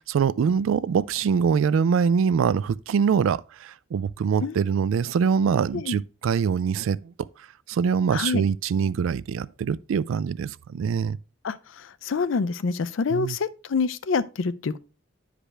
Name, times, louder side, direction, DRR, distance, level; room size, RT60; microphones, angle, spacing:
voice 1, 0.1-7.1 7.7-11.2 13.1-13.4, right 6 dB, 75° right, 0.3 m, -24 dB
voice 2, 11.4-14.8, left 4 dB, 65° left, 0.4 m, -27 dB
9.9 x 5.0 x 3.3 m
head